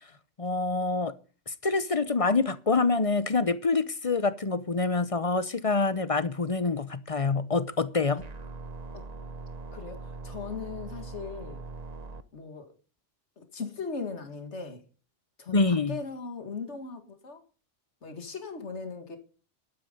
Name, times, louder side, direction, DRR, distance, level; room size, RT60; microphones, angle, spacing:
voice 1, 0.4-1.1 1.5-8.2 15.5-15.9, left 3 dB, 35° left, 0.7 m, -26 dB
sound 1, 8.2-12.2, right 3 dB, 35° right, 1.0 m, -41 dB
voice 2, 9.7-11.6 12.3-12.7 13.4-14.8 15.4-17.4 18.0-19.2, left 4 dB, 70° left, 2.2 m, -38 dB
12.5 x 9.4 x 5.2 m
omnidirectional pair, 1.2 m